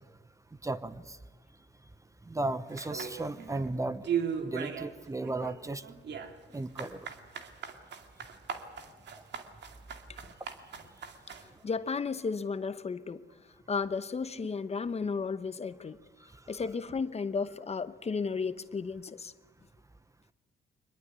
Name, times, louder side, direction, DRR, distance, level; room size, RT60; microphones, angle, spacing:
voice 1, 0.6-1.2 2.3-4.1 4.4-5.8 6.5-7.1, right 2 dB, 15° right, 0.9 m, -35 dB
sound 1, 2.8-3.7 4.0-4.9 5.2-11.5, right 7 dB, 60° right, 2.3 m, -37 dB
voice 2, 11.4-13.2 13.7-16.0 16.5-19.3, left 5 dB, 30° left, 0.9 m, -34 dB
23.5 x 21.0 x 8.3 m
cardioid pair, 90°, 20 cm